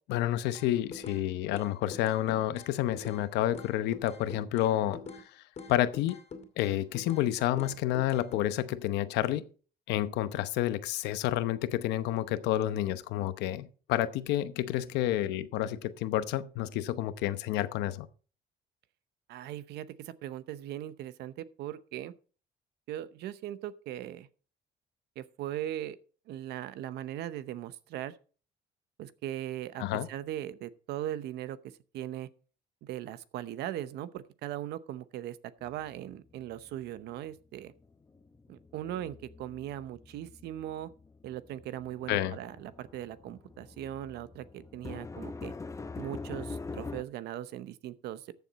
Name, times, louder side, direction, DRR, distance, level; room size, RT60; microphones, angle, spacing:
voice 1, 0.1-5.0 5.7-6.2 6.6-9.4 9.9-18.1 29.8-30.1 42.1-42.3, left 13 dB, 90° left, 0.9 m, -29 dB
sound 1, 0.5-1.2 1.5-3.2 3.5-5.3 5.6-7.3 7.6-8.5, left 4 dB, 40° left, 2.5 m, -44 dB
voice 2, 19.3-22.1 22.9-24.3 25.2-26.0 26.3-28.2 29.0-32.3 32.8-37.7 38.5-40.9 41.2-45.5 46.0-48.3, right 12 dB, 80° right, 0.9 m, -39 dB
sound 2, 35.6-37.3 37.6-47.0, left 3 dB, 20° left, 0.7 m, -44 dB
14.0 x 7.1 x 4.1 m
cardioid pair, 110°, 17 cm